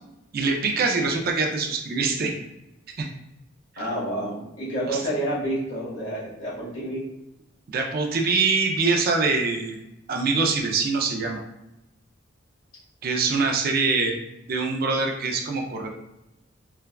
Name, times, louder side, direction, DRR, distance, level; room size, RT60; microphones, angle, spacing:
voice 1, 0.3-2.3 3.0-3.1 4.9-5.0 7.7-9.8 10.1-11.4 13.0-14.2 14.5-15.9, right 4 dB, 45° right, 2 dB, 0.4 m, -24 dB
voice 2, 3.8-7.0, right 1 dB, 65° left, -8 dB, 1.3 m, -29 dB
3.3 x 2.3 x 2.2 m, 0.90 s
head